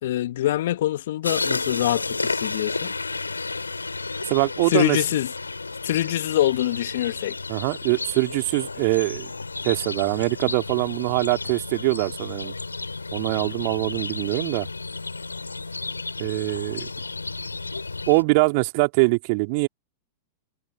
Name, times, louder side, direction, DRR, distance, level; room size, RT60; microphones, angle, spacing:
voice 1, 0.0-2.9 4.7-5.3 5.8-7.4, left 13 dB, 60° left, 1.5 m, -24 dB
sound 1, 1.2-18.2, left 3 dB, 85° left, 6.3 m, -32 dB
voice 2, 4.3-5.0 7.5-9.3 9.6-12.5 13.1-14.7 16.2-16.9 18.1-19.7, right 29 dB, 50° right, 2.9 m, -23 dB
figure-of-eight pair, 95°, 0 cm